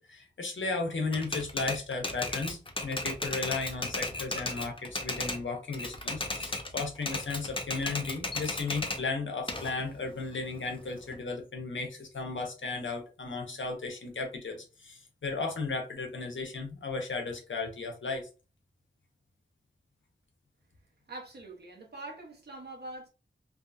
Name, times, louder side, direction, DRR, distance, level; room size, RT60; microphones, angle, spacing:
voice 1, 0.0-18.3, left 3 dB, 80° left, 0.8 m, -35 dB
Typewriter, 1.1-5.4 5.7-9.0 9.5-11.1, left 2 dB, 25° left, 0.6 m, -35 dB
voice 2, 21.1-23.1, right 2 dB, 60° right, 0.9 m, -44 dB
2.6 x 2.6 x 2.2 m
wide cardioid pair, 75°, 19 cm